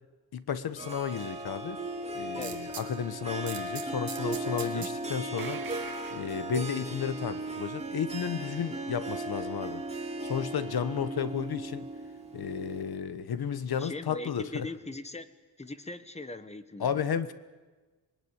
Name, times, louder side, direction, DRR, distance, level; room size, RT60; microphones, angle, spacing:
voice 1, 0.3-1.8 2.1-5.6 6.1-9.8 10.2-11.9 12.3-14.7 16.8-17.3, left 7 dB, 75° left, 13 dB, 1.3 m, -33 dB
Harp, 0.8-13.0, right 2 dB, 15° right, 3.1 m, -37 dB
voice 2, 2.4-2.7 4.6-4.9 13.8-15.3 15.6-17.0, left 2 dB, 15° left, 11 dB, 1.3 m, -40 dB
sound 1, 2.4-2.9 3.5-5.0 5.4-6.8, right 7 dB, 65° right, 2.4 m, -42 dB
26.0 x 21.0 x 9.9 m, 1.3 s
wide cardioid pair, 170°, 38 cm